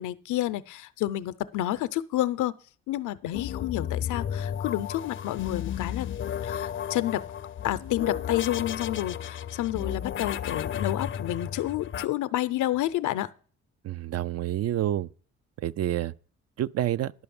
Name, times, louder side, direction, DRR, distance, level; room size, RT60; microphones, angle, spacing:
voice 1, 0.0-2.5 2.9-6.1 6.4-7.2 7.6-13.3, left 14 dB, 85° left, 0.7 m, -29 dB
sound 1, 3.3-12.1, left 9 dB, 40° left, 0.5 m, -33 dB
voice 2, 13.8-15.1 15.6-16.1 16.6-17.1, right 12 dB, 55° right, 0.5 m, -28 dB
11.0 x 5.8 x 7.0 m
cardioid pair, 90°, 30 cm